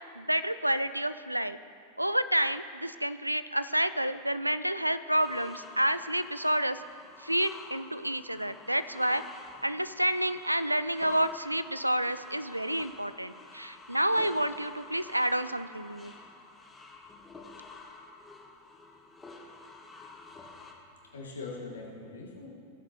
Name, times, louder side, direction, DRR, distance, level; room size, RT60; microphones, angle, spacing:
voice 1, 0.2-1.6 2.0-6.8 7.2-9.2 9.6-16.1, right 1 dB, 85° right, 13 dB, 0.3 m, -29 dB
sound 1, 5.1-20.7, left 3 dB, 15° left, 1.2 m, -49 dB
voice 2, 20.4-20.8 21.0-22.5, left 3 dB, 70° left, -2 dB, 2.0 m, -42 dB
17.0 x 7.5 x 3.0 m, 2.4 s
figure-of-eight pair, 90°, 0 cm